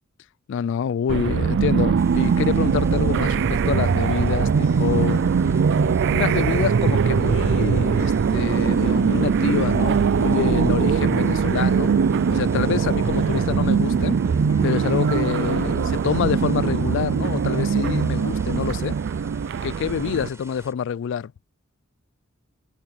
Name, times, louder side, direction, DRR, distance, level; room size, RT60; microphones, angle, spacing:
voice 1, 0.5-5.3 6.1-12.0 12.3-14.2 14.6-19.0 19.6-21.3, left 7 dB, 65° left, 0.3 m, -26 dB
sound 1, 1.1-20.3, right 6 dB, 60° right, 0.4 m, -21 dB
sound 2, 2.0-20.7, right 2 dB, 15° right, 6.1 m, -47 dB
sound 3, 3.6-18.4, left 2 dB, 80° left, 1.0 m, -39 dB
head